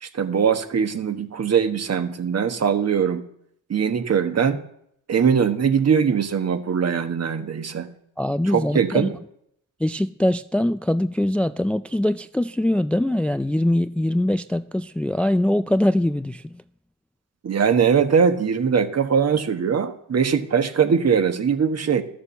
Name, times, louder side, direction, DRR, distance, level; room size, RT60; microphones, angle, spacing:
voice 1, 0.0-3.2 3.7-4.6 5.1-7.9 8.4-9.1 17.4-22.0, right 6 dB, 50° right, 1.3 m, -21 dB
voice 2, 8.2-9.1 9.8-16.5, left 1 dB, 5° left, 0.3 m, -22 dB
12.5 x 6.8 x 7.0 m
cardioid pair, 70°, 32 cm